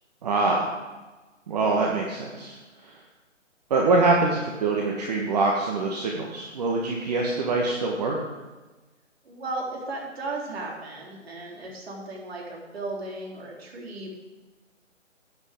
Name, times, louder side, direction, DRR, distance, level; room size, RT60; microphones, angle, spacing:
voice 1, 0.2-0.7 1.5-2.6 2.8-2.9 3.7-8.2, right 3 dB, 30° right, -1 dB, 1.3 m, -24 dB
voice 2, 9.2-14.1, right 2 dB, 50° right, -2 dB, 3.6 m, -35 dB
16.0 x 9.6 x 3.7 m, 1.2 s
figure-of-eight pair, 150°, 38 cm